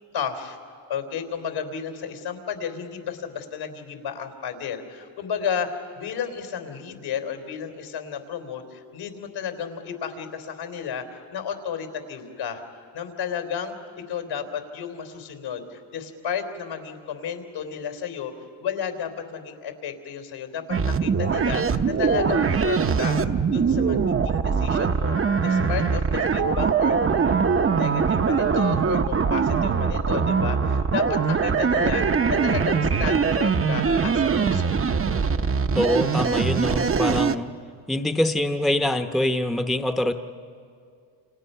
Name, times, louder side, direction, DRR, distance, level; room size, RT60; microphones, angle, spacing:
voice 1, 0.1-0.6 0.9-18.3 18.6-23.2 23.5-25.2 25.4-34.8, left 7 dB, 75° left, 6 dB, 3.7 m, -33 dB
sound 1, 20.7-37.3, right 5 dB, 30° right, 0.8 m, -22 dB
voice 2, 35.7-37.5 37.9-40.1, left 1 dB, ahead, 6 dB, 0.9 m, -24 dB
29.5 x 28.0 x 5.7 m, 2.3 s
cardioid pair, 90°, 47 cm